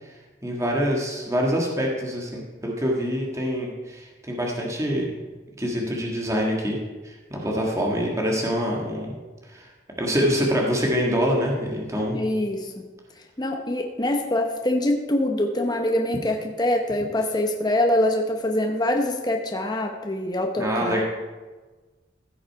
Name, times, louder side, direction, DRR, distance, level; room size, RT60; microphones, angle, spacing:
voice 1, 0.4-5.1 5.6-6.8 7.0-9.2 9.5-9.7 10.0-12.2 20.6-21.0, equal, 15° right, -1 dB, 1.6 m, -25 dB
voice 2, 12.1-12.7 13.4-21.0, left 1 dB, 25° left, 2 dB, 0.9 m, -24 dB
15.5 x 6.4 x 4.6 m, 1.3 s
head